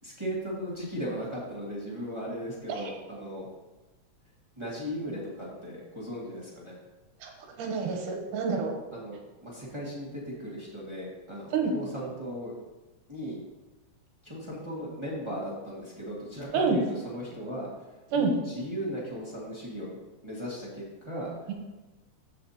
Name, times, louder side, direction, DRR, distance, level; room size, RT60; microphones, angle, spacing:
voice 1, 0.0-3.5 4.6-6.8 8.9-12.5 13.1-13.4 14.2-19.9 20.2-21.3, equal, 15° right, -7 dB, 1.3 m, -37 dB
voice 2, 7.6-8.7 11.5-11.7 16.5-16.8 18.1-18.3 21.5-21.6, right 5 dB, 85° right, 2 dB, 2.6 m, -27 dB
14.0 x 5.1 x 2.9 m, 1.1 s
omnidirectional pair, 3.6 m